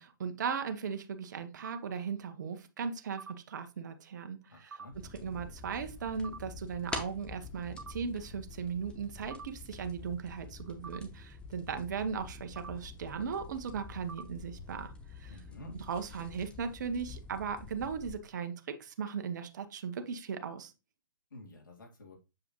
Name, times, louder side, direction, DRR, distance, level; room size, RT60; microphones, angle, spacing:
voice 1, 0.0-4.8 5.2-15.3 15.9-20.7, right 6 dB, 60° right, 8 dB, 1.0 m, -37 dB
sound 1, 1.6-1.8 3.2-3.3 4.7-4.9 6.2-6.4 7.8-7.9 9.3-9.4 10.8-11.0 12.6-12.7 14.1-14.2, right 5 dB, 85° right, 0.4 m, -44 dB
voice 2, 4.5-5.0 15.3-15.8 21.3-22.2, left 2 dB, 75° left, 0 dB, 3.1 m, -50 dB
sound 2, 4.9-18.2, left 4 dB, 10° left, 0.9 m, -47 dB
7.3 x 5.0 x 3.0 m, 0.28 s
hypercardioid pair, 135°, 11 cm